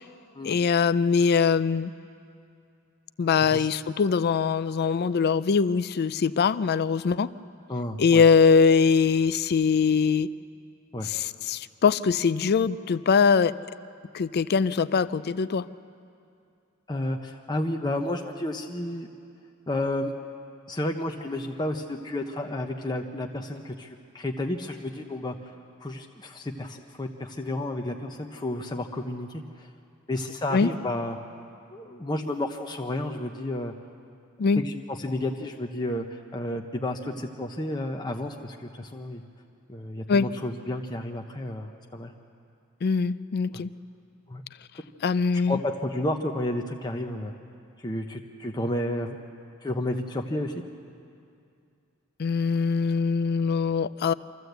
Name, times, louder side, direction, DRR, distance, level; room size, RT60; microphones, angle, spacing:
voice 1, 0.4-1.9 3.2-7.3 8.0-10.3 11.0-13.5 14.1-15.7 30.5-30.7 34.4-34.6 40.1-40.3 42.8-43.7 45.0-45.6 52.2-54.1, left 5 dB, 50° left, 16 dB, 0.4 m, -22 dB
voice 2, 7.7-8.2 10.9-11.1 16.9-19.1 19.7-20.1 20.7-25.4 25.8-29.7 30.1-31.2 31.7-33.7 34.6-39.2 39.7-42.1 43.5-43.6 44.3-44.4 45.5-47.3 47.8-49.2 49.6-50.5, left 1 dB, 20° left, 2 dB, 0.8 m, -31 dB
25.5 x 14.5 x 8.0 m, 2.5 s
head